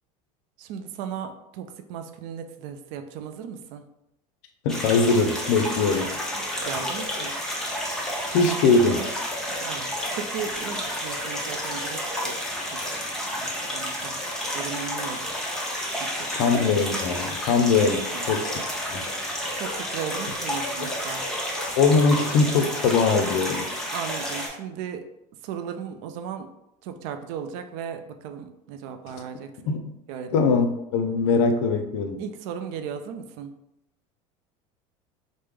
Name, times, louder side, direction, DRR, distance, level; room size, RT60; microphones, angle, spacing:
voice 1, 0.6-3.8 6.3-7.3 9.5-12.4 13.4-14.2 14.5-15.2 16.0-16.5 18.1-18.3 19.6-21.2 23.9-25.0 25.4-26.5 26.8-29.5 30.1-30.4 32.2-33.5, right 7 dB, 65° right, 8 dB, 0.4 m, -36 dB
voice 2, 4.6-6.1 8.3-9.1 16.3-18.6 18.9-19.0 21.8-23.7 29.7-29.8 30.3-32.2, left 4 dB, 70° left, 6 dB, 0.5 m, -21 dB
sound 1, 4.7-24.5, equal, 5° left, 0.8 m, -30 dB
3.1 x 2.1 x 3.4 m, 0.84 s
supercardioid pair, 100°, 17 cm